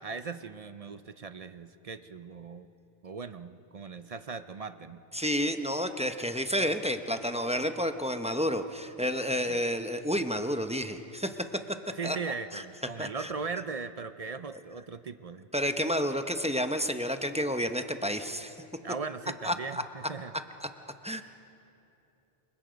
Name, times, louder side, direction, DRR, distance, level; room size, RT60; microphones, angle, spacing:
voice 1, 0.0-2.7 3.0-5.0 9.4-9.6 12.0-15.5 18.8-20.3, right 5 dB, 40° right, 11 dB, 0.6 m, -39 dB
voice 2, 5.1-11.4 11.7-11.8 12.0-12.2 12.5-12.6 13.0-13.3 15.5-18.5 19.4-19.8 21.0-21.2, equal, 5° right, 7 dB, 0.7 m, -30 dB
29.0 x 23.5 x 5.1 m, 2.8 s
omnidirectional pair, 1.0 m